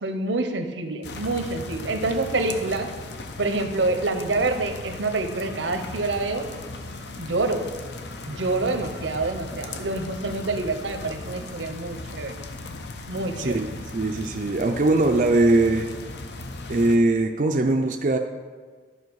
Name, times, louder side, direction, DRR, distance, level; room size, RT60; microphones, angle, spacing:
voice 1, 0.0-2.9 3.4-6.5 7.2-7.6 8.3-12.3 13.1-13.6, right 2 dB, 80° right, 7 dB, 0.9 m, -27 dB
sound 1, 1.0-17.0, left 2 dB, 65° left, 0.7 m, -37 dB
voice 2, 13.4-15.9 16.7-18.2, right 2 dB, 45° right, 3 dB, 0.4 m, -21 dB
12.0 x 5.5 x 4.7 m, 1.5 s
head